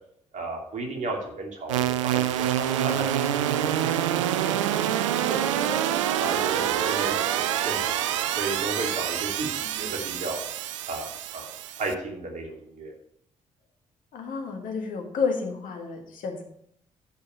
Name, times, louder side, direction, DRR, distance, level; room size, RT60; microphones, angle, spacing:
voice 1, 0.3-4.1 4.4-5.8 6.2-8.0 8.3-10.4 10.9-12.9, right 2 dB, 50° right, 0 dB, 2.7 m, -34 dB
sound 1, 1.7-11.9, right 11 dB, 80° right, 0.4 m, -26 dB
voice 2, 14.1-16.4, left 5 dB, 60° left, 2 dB, 1.8 m, -31 dB
10.0 x 5.7 x 5.6 m, 0.70 s
figure-of-eight pair, 40°, 16 cm